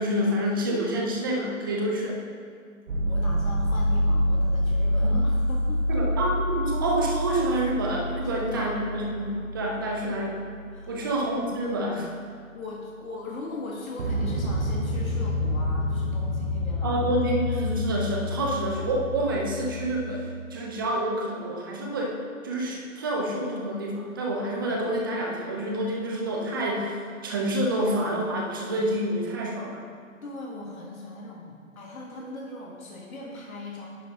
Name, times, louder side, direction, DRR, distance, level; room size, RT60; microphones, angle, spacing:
voice 1, 0.0-2.2 5.0-5.1 5.9-10.4 10.9-12.1 16.8-22.2 22.4-29.8, right 1 dB, 15° right, -1 dB, 0.6 m, -28 dB
sound 1, 2.9-10.7 14.0-20.1, left 1 dB, 55° right, 1.3 m, -27 dB
voice 2, 3.1-6.0 8.2-8.8 10.7-11.1 12.5-17.1 30.2-33.9, left 2 dB, 80° left, -3 dB, 1.7 m, -39 dB
10.5 x 7.9 x 2.9 m, 2.1 s
hypercardioid pair, 150°, 41 cm